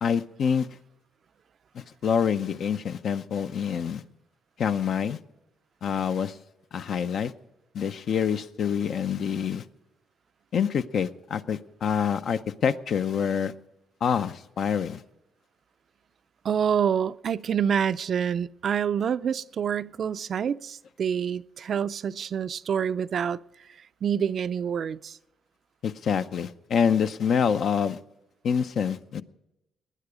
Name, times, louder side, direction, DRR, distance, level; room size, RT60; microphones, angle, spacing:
voice 1, 0.0-0.7 1.7-4.0 4.6-5.2 5.8-6.4 6.7-7.3 7.7-9.6 10.5-13.5 14.0-15.0 25.8-28.0 28.4-29.2, left 7 dB, 60° left, 0.6 m, -26 dB
voice 2, 16.4-23.4 24.0-25.2, right 8 dB, 55° right, 0.4 m, -27 dB
19.0 x 9.8 x 5.0 m
cardioid pair, 90°, 0 cm